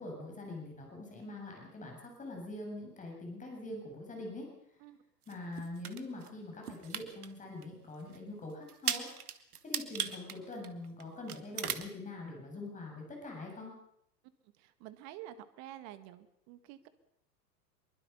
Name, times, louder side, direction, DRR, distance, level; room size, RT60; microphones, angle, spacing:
voice 1, 0.0-4.5 5.3-9.1 9.6-13.7, left 2 dB, 15° left, 0 dB, 7.3 m, -44 dB
sound 1, 5.3-6.3 6.6-7.3 7.6-7.7 8.1-8.2 8.7-11.0 11.3-11.9, right 8 dB, 60° right, 2.0 m, -37 dB
voice 2, 14.6-16.9, right 12 dB, 35° right, 12 dB, 1.8 m, -49 dB
25.0 x 23.0 x 5.6 m, 0.73 s
figure-of-eight pair, 100°, 50 cm